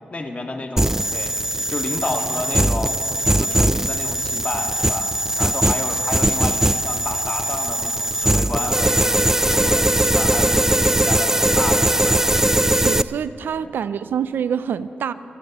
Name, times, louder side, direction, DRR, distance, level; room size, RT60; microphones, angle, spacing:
voice 1, 0.1-2.9 3.2-5.1 5.4-9.3 9.5-12.2 13.6-13.7, left 2 dB, 40° left, 3 dB, 1.8 m, -30 dB
sound 1, 0.8-13.0, right 1 dB, 15° right, 0.4 m, -20 dB
voice 2, 12.7-15.1, right 8 dB, 75° right, 15 dB, 0.4 m, -26 dB
27.0 x 16.0 x 3.0 m, 2.8 s
supercardioid pair, 40°, 3 cm